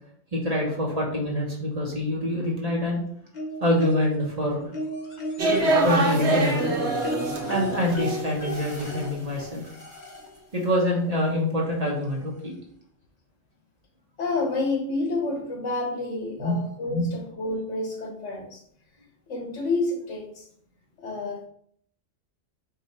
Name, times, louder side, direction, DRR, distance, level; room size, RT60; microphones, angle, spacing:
voice 1, 0.3-3.0 3.6-4.7 5.8-6.7 7.5-9.6 10.5-12.5 16.4-16.6 16.9-17.1, left 1 dB, 35° right, -3 dB, 1.1 m, -25 dB
sound 1, 3.3-4.3 4.7-10.4 11.6-11.7 12.1-12.2, left 1 dB, 40° left, 1.0 m, -34 dB
sound 2, 5.4-8.2 8.5-9.2, right 2 dB, 65° right, 1.2 m, -25 dB
voice 2, 14.2-18.6 19.3-20.4 21.0-21.5, left 2 dB, 70° left, 2 dB, 1.3 m, -29 dB
4.8 x 2.7 x 4.1 m, 0.65 s
omnidirectional pair, 1.3 m